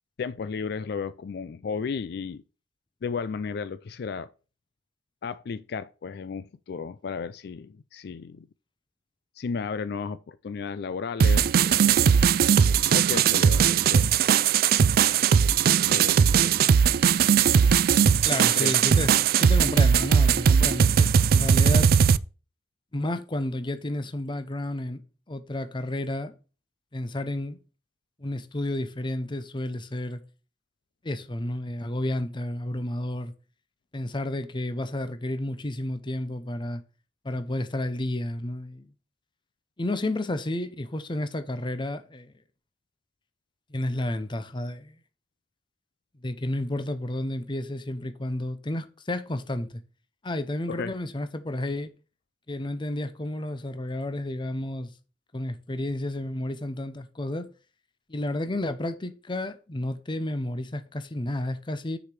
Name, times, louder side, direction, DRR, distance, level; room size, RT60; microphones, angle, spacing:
voice 1, 0.2-2.4 3.0-4.3 5.2-8.5 9.4-12.1 12.9-14.1 15.9-16.3 18.4-18.7 50.8-50.9, left 5 dB, 60° left, 0.4 m, -34 dB
sound 1, 11.2-22.2, right 7 dB, 55° right, 0.3 m, -19 dB
voice 2, 18.3-21.9 22.9-25.0 25.3-26.3 26.9-27.6 28.2-30.2 31.0-33.3 33.9-36.8 37.2-38.9 39.8-42.3 43.7-45.0 46.2-49.8 50.2-51.9 52.5-54.9 55.3-57.5 58.1-62.0, left 1 dB, 25° left, 0.7 m, -31 dB
6.5 x 5.0 x 5.8 m
head